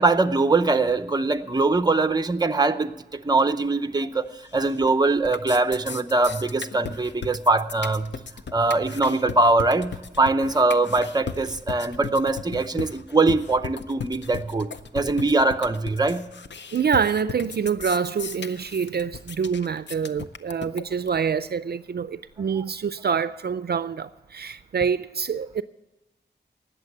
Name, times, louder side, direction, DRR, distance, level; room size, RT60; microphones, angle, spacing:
voice 1, 0.0-2.9 3.3-4.3 4.5-8.1 8.5-16.3 22.6-22.7, right 3 dB, 20° right, 0.6 m, -22 dB
sound 1, 4.4-4.9 5.2-21.2, left 6 dB, 85° left, 0.7 m, -36 dB
voice 2, 16.7-25.6, right 6 dB, 60° right, 0.4 m, -26 dB
19.0 x 7.3 x 6.7 m
wide cardioid pair, 100°, 18 cm